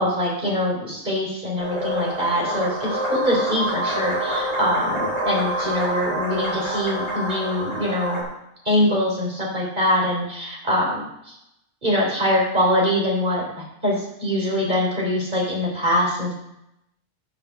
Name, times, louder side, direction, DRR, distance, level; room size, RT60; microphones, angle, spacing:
voice 1, 0.0-8.2 8.7-11.1 11.8-16.3, left 1 dB, 35° right, -3 dB, 3.8 m, -23 dB
sound 1, 1.6-8.2, right 1 dB, 55° right, 4.3 m, -27 dB
7.1 x 6.8 x 6.9 m, 0.80 s
omnidirectional pair, 1.3 m